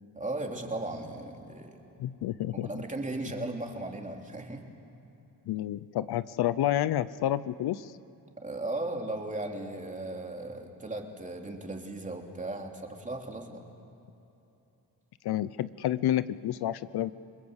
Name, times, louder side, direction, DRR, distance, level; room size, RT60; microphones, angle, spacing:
voice 1, 0.1-1.7 2.5-4.6 8.4-13.6, right 2 dB, 20° right, 2 dB, 3.1 m, -36 dB
voice 2, 2.0-2.8 5.5-7.9 15.2-17.1, left 12 dB, 75° left, 17 dB, 0.7 m, -29 dB
29.5 x 20.5 x 8.1 m, 2.9 s
cardioid pair, 105°, 38 cm